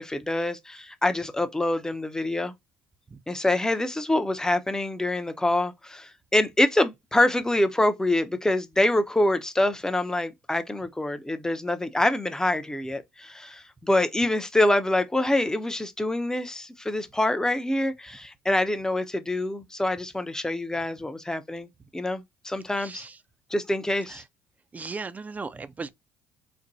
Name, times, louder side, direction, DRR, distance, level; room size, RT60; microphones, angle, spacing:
voice 1, 0.0-2.5 3.3-23.0 23.5-24.2, left 1 dB, 10° left, 0.7 m, -25 dB
voice 2, 22.8-23.2 24.0-24.3 24.7-25.9, right 4 dB, 25° right, 0.5 m, -37 dB
4.2 x 2.2 x 2.6 m
hypercardioid pair, 60°, 6 cm